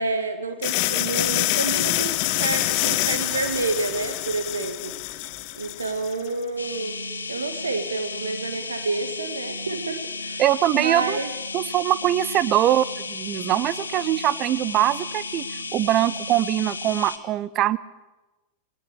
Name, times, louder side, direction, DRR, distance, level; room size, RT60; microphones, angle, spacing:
voice 1, 0.0-4.9 5.6-7.0 7.3-10.4 10.7-11.3, right 3 dB, 75° right, 9 dB, 1.6 m, -29 dB
sound 1, 0.6-6.3, left 17 dB, 45° left, 1.0 m, -26 dB
sound 2, 6.6-17.2, left 3 dB, 80° left, 1.9 m, -34 dB
voice 2, 10.4-11.2 11.5-17.8, right 13 dB, 35° right, 19 dB, 0.7 m, -22 dB
20.0 x 19.0 x 7.9 m, 1.1 s
figure-of-eight pair, 90°, 0 cm